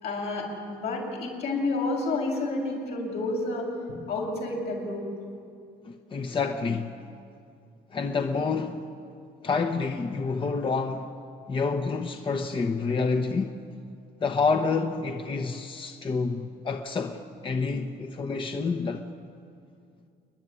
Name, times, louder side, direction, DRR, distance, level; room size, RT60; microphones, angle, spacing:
voice 1, 0.0-3.7 4.1-5.1, left 2 dB, 75° left, 6.9 m, -30 dB
voice 2, 5.8-6.9 7.9-8.8 9.4-11.1 11.5-13.5 14.2-19.1, left 4 dB, 30° left, 1.1 m, -28 dB
28.5 x 11.0 x 9.9 m
cardioid pair, 110°, 17 cm